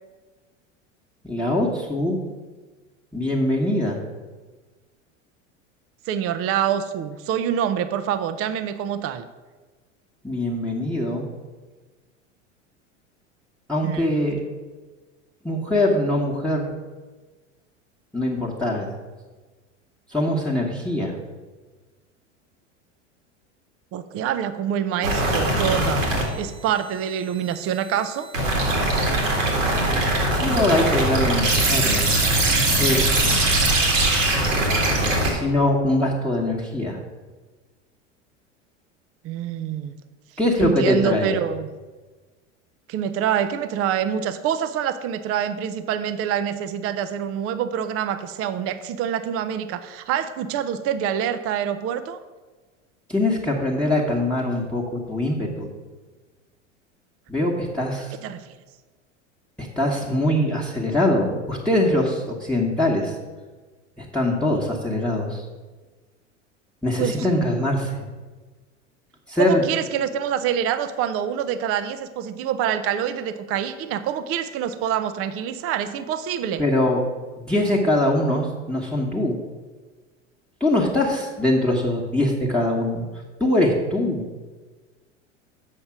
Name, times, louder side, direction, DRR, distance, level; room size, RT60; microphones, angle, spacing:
voice 1, 1.2-2.2 3.1-4.0 10.2-11.3 13.7-14.4 15.4-16.7 18.1-18.9 20.1-21.2 30.3-32.1 32.8-33.3 35.3-37.0 40.4-41.4 53.1-55.7 57.3-58.1 59.6-63.2 64.0-65.5 66.8-68.1 69.3-69.6 76.6-77.0 77.4-79.4 80.6-83.0 83.4-84.2, left 1 dB, 5° left, -4 dB, 1.2 m, -22 dB
voice 2, 6.1-9.2 13.8-14.1 23.9-26.1 26.4-28.3 39.2-40.0 40.6-41.7 42.9-52.2 58.2-58.5 67.0-67.2 69.4-76.7, right 9 dB, 40° right, 11 dB, 0.6 m, -26 dB
sound 1, 25.0-26.2 28.3-35.3, right 2 dB, 85° right, 2.0 m, -21 dB
7.4 x 5.2 x 6.0 m, 1.3 s
hypercardioid pair, 85°, 37 cm